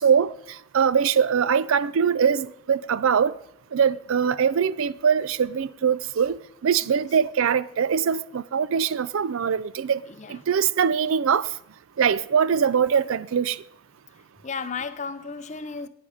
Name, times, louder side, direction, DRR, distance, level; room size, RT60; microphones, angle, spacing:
voice 1, 0.0-3.3 3.7-10.0 10.3-11.5 12.0-13.6, right 7 dB, 75° right, 0.4 m, -22 dB
voice 2, 10.1-10.4 14.4-15.9, left 5 dB, 35° left, 0.5 m, -34 dB
10.5 x 9.4 x 4.9 m
head